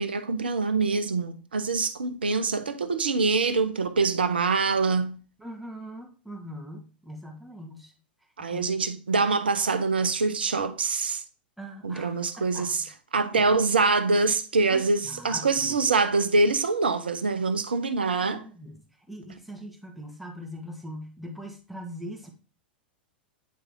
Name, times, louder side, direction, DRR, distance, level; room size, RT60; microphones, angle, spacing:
voice 1, 0.0-5.2 8.4-11.2 11.8-12.8 13.1-18.4, right 4 dB, 80° right, 0.7 m, -25 dB
voice 2, 5.4-7.9 8.5-8.8 11.6-12.7 13.3-13.6 14.7-15.8 18.0-22.3, equal, ahead, 1.4 m, -41 dB
9.4 x 3.3 x 3.5 m
figure-of-eight pair, 95°, 5 cm